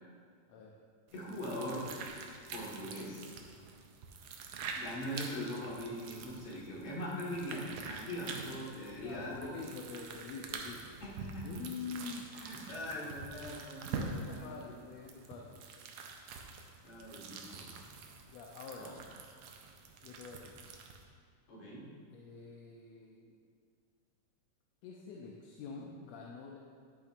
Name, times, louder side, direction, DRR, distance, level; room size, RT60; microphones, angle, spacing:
voice 1, 1.1-1.8 2.5-3.2 4.7-9.5 11.0-11.5 12.0-12.2 12.4-14.8 16.8-17.7 18.8-18.9 21.5-21.8, equal, 55° left, -5 dB, 2.5 m, -41 dB
sound 1, 1.1-21.0, right 4 dB, 75° right, 1.5 m, -46 dB
voice 2, 9.0-11.0 11.4-12.3 13.9-15.6 18.3-19.0 20.0-20.6 22.1-23.4 24.8-26.6, left 5 dB, 75° left, -1 dB, 1.7 m, -46 dB
10.0 x 8.7 x 2.5 m, 2.1 s
omnidirectional pair, 3.4 m